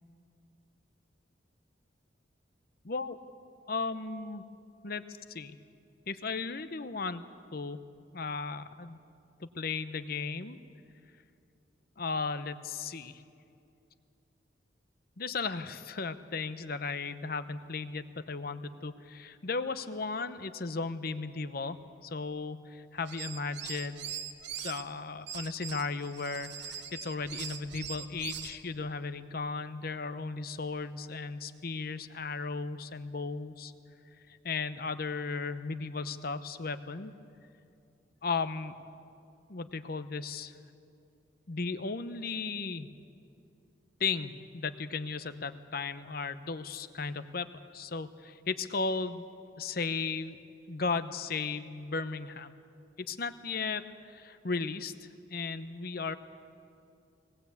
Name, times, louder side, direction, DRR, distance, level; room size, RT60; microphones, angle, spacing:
voice 1, 2.8-3.2 3.7-4.4 4.8-5.6 6.1-7.2 7.5-7.8 8.1-9.0 9.4-10.6 12.0-13.2 15.2-24.1 24.6-33.7 34.3-37.1 38.2-38.8 39.5-40.5 41.5-42.9 44.0-47.5 47.7-49.3 49.6-50.4 50.7-52.5 53.0-56.2, left 4 dB, 50° left, 11 dB, 0.8 m, -35 dB
sound 1, 23.0-24.8 25.3-28.6, right 8 dB, 65° right, 1.2 m, -41 dB
20.0 x 19.0 x 8.3 m, 2.5 s
head